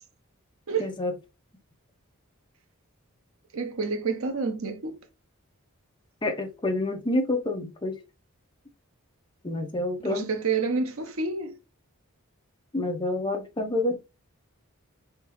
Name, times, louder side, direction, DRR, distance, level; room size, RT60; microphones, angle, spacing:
voice 1, 0.8-1.1 6.2-8.0 9.4-10.3 12.7-14.0, left 2 dB, 20° left, 0.8 m, -28 dB
voice 2, 3.5-5.0 10.0-11.6, right 4 dB, 70° right, 0.7 m, -29 dB
3.6 x 3.6 x 3.0 m
head